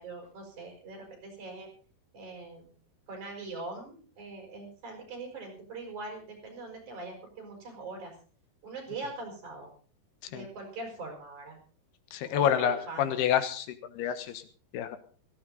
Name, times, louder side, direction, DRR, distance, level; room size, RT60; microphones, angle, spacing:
voice 1, 0.0-1.7 2.1-2.8 3.1-8.1 8.6-9.7 10.3-11.6 12.3-13.2 14.0-14.2, right 3 dB, 50° right, 2 dB, 6.7 m, -42 dB
voice 2, 12.1-14.4 14.7-15.0, left 9 dB, 85° left, 11 dB, 3.3 m, -28 dB
17.5 x 15.0 x 4.0 m, 0.39 s
omnidirectional pair, 4.6 m